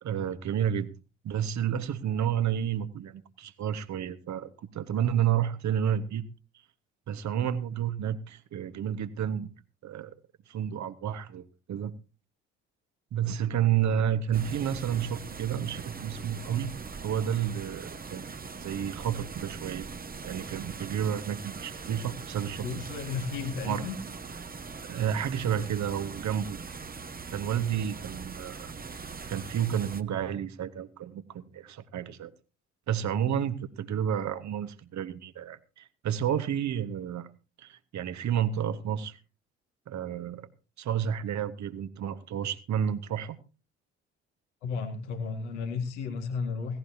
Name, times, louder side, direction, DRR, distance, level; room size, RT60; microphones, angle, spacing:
voice 1, 0.0-0.9 1.2-6.3 7.1-9.5 9.8-10.1 10.5-11.9 13.1-16.7 17.0-18.3 18.6-19.9 20.2-22.7 23.6-23.8 24.8-26.6 27.3-28.7 29.3-32.3 32.9-37.3 37.6-39.2 39.9-40.5 40.8-43.4, right 9 dB, 55° right, 12 dB, 1.5 m, -30 dB
sound 1, 14.3-30.0, right 5 dB, 25° right, 1.3 m, -41 dB
voice 2, 22.6-24.0 44.6-46.8, left 5 dB, 80° left, 4 dB, 2.0 m, -33 dB
17.0 x 16.5 x 2.8 m, 0.33 s
hypercardioid pair, 45°, 34 cm